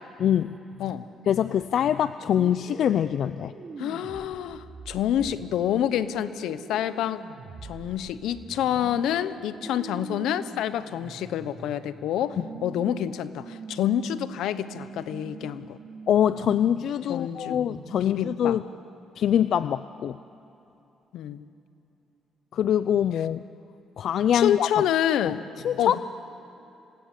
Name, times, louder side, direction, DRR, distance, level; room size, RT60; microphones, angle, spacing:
voice 1, 0.2-0.6 1.3-3.5 12.4-12.5 16.1-18.6 19.2-20.2 22.5-23.4 24.0-24.7 25.2-25.3 25.6-26.0, left 9 dB, 70° left, 14 dB, 0.4 m, -24 dB
sound 1, 2.2-18.4, right 4 dB, 45° right, 2.7 m, -43 dB
voice 2, 3.8-7.2 7.6-15.8 17.1-17.6 18.0-18.6 21.1-21.4 24.3-25.4 25.8-26.0, left 10 dB, 85° left, 14 dB, 0.9 m, -27 dB
26.5 x 18.5 x 8.3 m, 2.9 s
cardioid pair, 90°, 0 cm